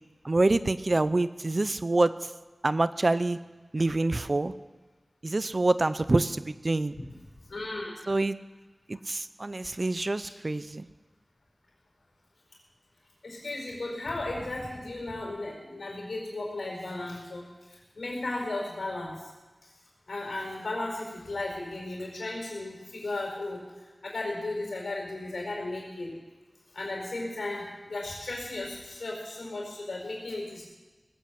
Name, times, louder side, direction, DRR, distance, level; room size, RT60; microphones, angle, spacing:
voice 1, 0.2-2.1 2.6-3.4 3.7-4.5 5.2-6.9 8.1-8.4 8.9-10.9, right 2 dB, 50° right, 14 dB, 0.6 m, -26 dB
voice 2, 7.5-7.9 10.2-10.4 13.2-19.3 20.1-26.1 26.7-30.6, left 2 dB, 90° left, -2 dB, 4.8 m, -35 dB
19.0 x 8.4 x 7.6 m, 1.2 s
cardioid pair, 40°, 0 cm